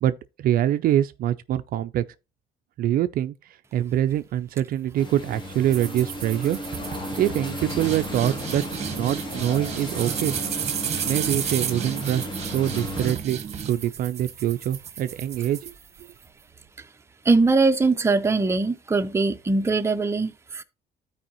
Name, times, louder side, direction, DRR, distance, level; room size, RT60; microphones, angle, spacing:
voice 1, 0.0-2.0 2.8-3.3 3.7-6.6 7.2-8.6 9.0-10.4 11.1-13.4 13.7-15.7, right 12 dB, 60° right, 0.4 m, -24 dB
sound 1, 4.9-13.1, left 1 dB, 30° left, 1.4 m, -35 dB
sound 2, 5.7-16.2, right 8 dB, 40° right, 1.0 m, -32 dB
voice 2, 17.2-20.6, right 3 dB, 15° right, 0.6 m, -21 dB
12.5 x 4.8 x 2.9 m
cardioid pair, 110°, 17 cm